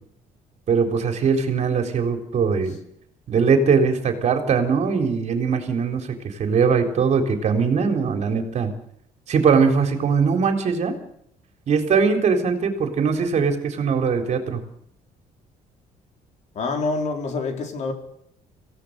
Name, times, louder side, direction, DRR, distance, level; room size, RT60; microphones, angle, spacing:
voice 1, 0.7-2.7 3.3-8.7 9.3-10.9 11.7-14.6, right 5 dB, 50° right, 3.9 m, -21 dB
voice 2, 16.6-17.9, left 3 dB, 50° left, 4.2 m, -26 dB
26.5 x 17.0 x 6.7 m
cardioid pair, 145°, 15 cm